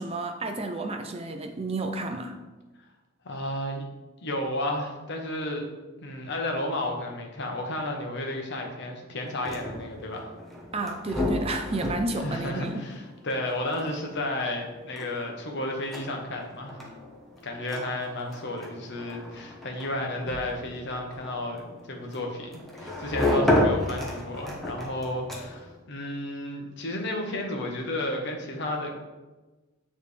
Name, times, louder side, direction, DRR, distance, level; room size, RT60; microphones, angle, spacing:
voice 1, 0.0-2.4 10.7-12.9, right 2 dB, 30° right, 5 dB, 0.4 m, -31 dB
voice 2, 3.2-3.8 4.2-5.6 6.0-10.3 12.1-16.8 17.4-28.9, left 1 dB, 55° left, 2 dB, 0.9 m, -32 dB
sound 1, 9.2-25.8, left 1 dB, ahead, 0.8 m, -32 dB
8.9 x 3.3 x 3.3 m, 1.2 s
head